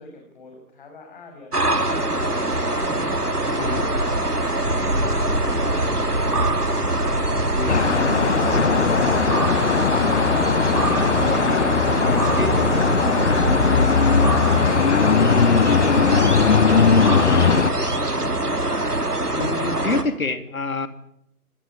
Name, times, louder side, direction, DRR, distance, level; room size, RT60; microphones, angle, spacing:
voice 1, 0.0-7.6, left 1 dB, 35° left, 3 dB, 6.2 m, -44 dB
sound 1, 1.5-20.0, right 1 dB, 85° right, 3.5 m, -23 dB
sound 2, 7.7-17.7, left 6 dB, 50° left, 0.9 m, -19 dB
sound 3, 9.4-15.6, right 10 dB, 10° right, 1.1 m, -43 dB
voice 2, 11.0-12.8 19.4-20.9, left 3 dB, 65° left, 9 dB, 3.2 m, -28 dB
26.5 x 20.0 x 8.8 m, 0.74 s
figure-of-eight pair, 145°, 45 cm